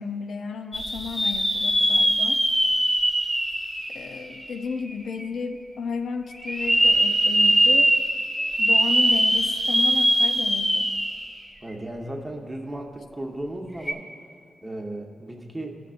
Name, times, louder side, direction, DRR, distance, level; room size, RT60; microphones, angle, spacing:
voice 1, 0.0-2.4 3.9-7.9 8.6-10.9, left 5 dB, 75° left, 6 dB, 0.4 m, -33 dB
sound 1, 0.7-4.7 5.2-5.3 6.4-11.3 11.7-11.8 13.8-13.9, equal, 5° left, 1.0 m, -22 dB
voice 2, 11.6-14.1 14.6-15.8, right 1 dB, 15° right, 1 dB, 0.9 m, -35 dB
17.0 x 6.4 x 2.5 m, 2.3 s
cardioid pair, 95°, 0 cm